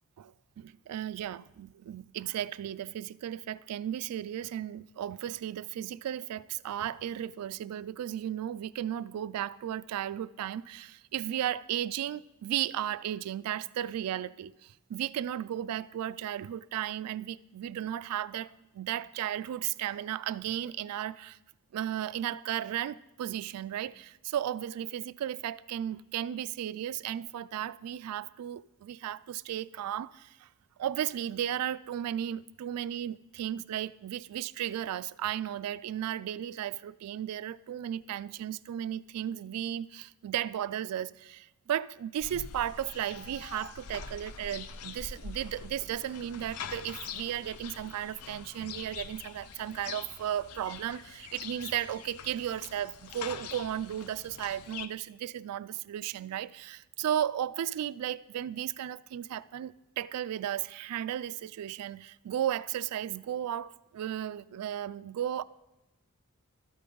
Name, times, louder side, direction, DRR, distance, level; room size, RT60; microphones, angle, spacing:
voice 1, 0.2-21.4 21.7-30.5 30.8-65.4, right 11 dB, 90° right, 0.3 m, -35 dB
sound 1, 42.2-54.9, left 6 dB, 85° left, 0.6 m, -44 dB
13.0 x 8.6 x 3.8 m
head